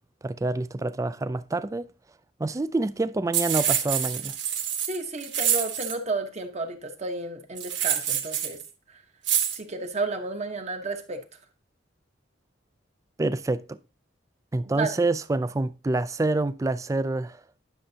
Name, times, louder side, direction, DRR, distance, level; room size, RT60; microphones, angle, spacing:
voice 1, 0.2-1.9 2.4-4.3 13.2-13.8 14.5-17.4, right 2 dB, 15° right, 0.3 m, -27 dB
sound 1, 3.3-6.0 7.6-8.6 9.2-9.6, right 9 dB, 65° right, 1.3 m, -26 dB
voice 2, 4.9-8.6 8.9-9.0 9.5-11.2 14.8-14.9, right 3 dB, 35° right, 1.1 m, -32 dB
10.0 x 6.6 x 2.8 m
head